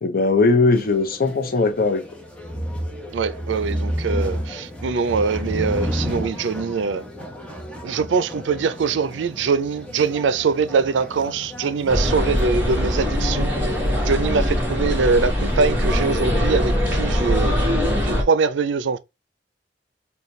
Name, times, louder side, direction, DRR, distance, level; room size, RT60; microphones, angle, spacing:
voice 1, 0.0-2.0, left 3 dB, 55° left, 0.7 m, -19 dB
sound 1, 0.7-16.5, equal, 5° left, 0.7 m, -32 dB
voice 2, 3.1-7.0 7.8-13.5 14.0-17.5 18.0-19.0, right 5 dB, 90° right, 0.4 m, -23 dB
sound 2, 11.9-18.2, equal, 10° right, 1.3 m, -21 dB
4.1 x 2.3 x 3.1 m
head